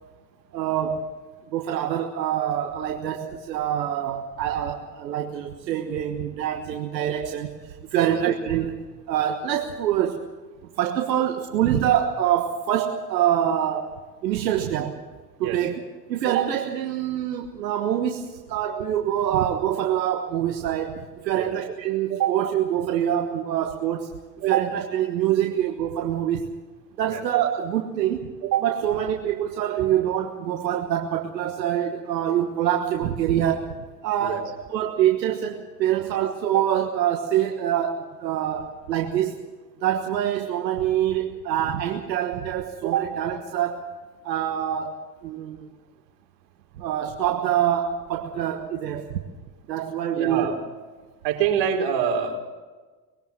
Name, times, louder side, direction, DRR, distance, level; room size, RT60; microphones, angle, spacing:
voice 1, 0.5-1.1 1.5-10.3 10.8-15.0 15.4-15.8 16.1-24.1 24.4-26.5 27.0-33.7 34.0-39.4 39.8-43.8 44.2-45.7 46.8-49.1 49.7-50.5, right 10 dB, 85° right, 3 dB, 1.5 m, -25 dB
voice 2, 50.1-50.6 51.2-52.4, right 8 dB, 60° right, 0 dB, 4.4 m, -25 dB
21.0 x 17.5 x 7.5 m, 1.3 s
hypercardioid pair, 85°, 49 cm